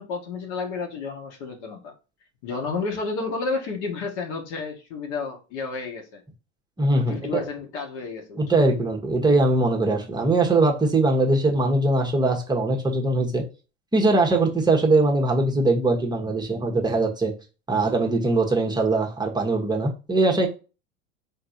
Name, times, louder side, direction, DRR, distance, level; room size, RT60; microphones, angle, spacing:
voice 1, 0.0-1.9 2.4-6.2 6.9-8.4, left 4 dB, 65° left, 1.9 m, -31 dB
voice 2, 6.8-7.5 8.4-13.4 13.9-17.3 17.7-20.5, right 2 dB, 10° right, 1.2 m, -21 dB
4.4 x 3.8 x 2.8 m
hypercardioid pair, 100°, 37 cm